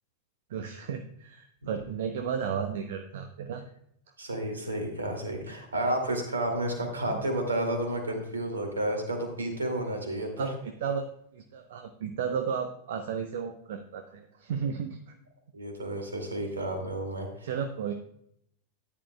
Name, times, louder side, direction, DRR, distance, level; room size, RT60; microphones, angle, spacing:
voice 1, 0.5-3.6 7.0-7.2 10.4-15.1 17.4-17.9, right 7 dB, 60° right, 6 dB, 0.8 m, -34 dB
voice 2, 4.2-10.5 15.5-17.5, right 1 dB, 75° right, 4 dB, 2.4 m, -31 dB
13.5 x 10.5 x 2.3 m, 0.70 s
figure-of-eight pair, 90°, 0 cm